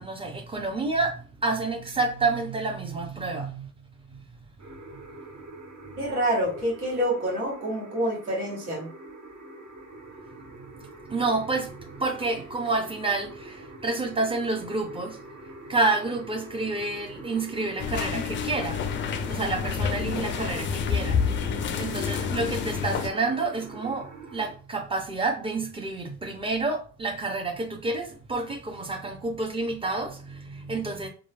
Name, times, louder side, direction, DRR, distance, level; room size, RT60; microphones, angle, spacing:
voice 1, 0.0-3.7 4.1-4.2 10.5-15.2 15.7-18.8 19.3-21.2 21.8-31.1, right 3 dB, 15° right, 0.7 m, -29 dB
sound 1, 4.6-24.5, right 2 dB, 40° right, 1.0 m, -45 dB
voice 2, 6.0-8.9, equal, 90° right, 1.0 m, -27 dB
sound 2, 17.8-23.1, left 6 dB, 30° left, 0.4 m, -28 dB
3.0 x 2.3 x 2.5 m
hypercardioid pair, 60°, 43 cm